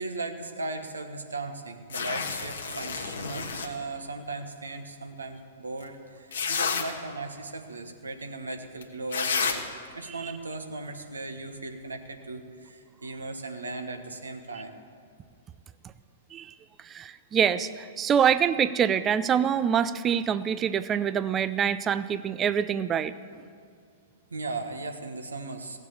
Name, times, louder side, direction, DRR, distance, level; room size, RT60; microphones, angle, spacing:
voice 1, 0.0-9.6 9.9-14.7 24.3-25.8, right 3 dB, 80° right, 5 dB, 1.4 m, -37 dB
sound 1, 1.9-3.7 5.8-5.9 6.3-6.8 8.8-8.9 9.1-9.5, left 6 dB, 70° left, 1.4 m, -30 dB
voice 2, 16.8-23.1, right 8 dB, 20° right, 15 dB, 0.5 m, -25 dB
16.5 x 7.3 x 8.3 m, 2.2 s
figure-of-eight pair, 110°, 0 cm